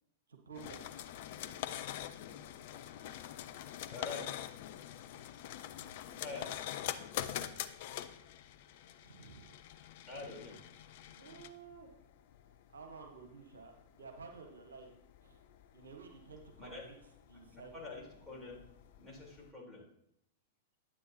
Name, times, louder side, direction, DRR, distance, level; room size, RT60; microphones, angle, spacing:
voice 1, 0.3-0.8 9.0-9.6 11.2-11.9 12.7-14.9 15.2-15.4 15.7-17.0 17.3-17.7, right 4 dB, 70° right, 3 dB, 1.3 m, -52 dB
sound 1, 0.5-19.5, left 11 dB, 50° left, 0.5 m, -45 dB
voice 2, 3.9-4.4 4.9-5.7 6.0-6.6 8.1-8.4 8.8-8.9 10.1-10.6 16.6-16.9 17.3-18.6 19.0-19.8, left 3 dB, 5° left, -5 dB, 3.7 m, -47 dB
10.0 x 8.4 x 2.8 m, 0.72 s
figure-of-eight pair, 100°, 0 cm